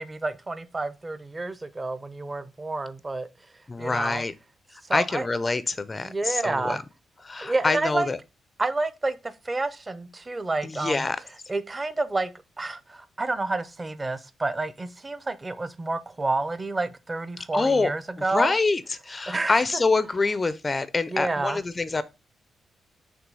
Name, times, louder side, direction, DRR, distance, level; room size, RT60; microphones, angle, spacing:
voice 1, 0.0-3.3 3.8-4.2 4.9-5.3 6.0-6.8 7.4-8.1 8.6-11.1 11.5-12.3 12.6-18.5 19.3-19.6 21.1-21.6, right 2 dB, 20° right, 0.6 m, -29 dB
voice 2, 3.7-4.3 4.9-6.8 7.2-8.2 10.6-11.2 17.5-17.9 18.3-22.0, left 3 dB, 25° left, 0.4 m, -25 dB
6.0 x 3.1 x 5.3 m
cardioid pair, 115°, 0 cm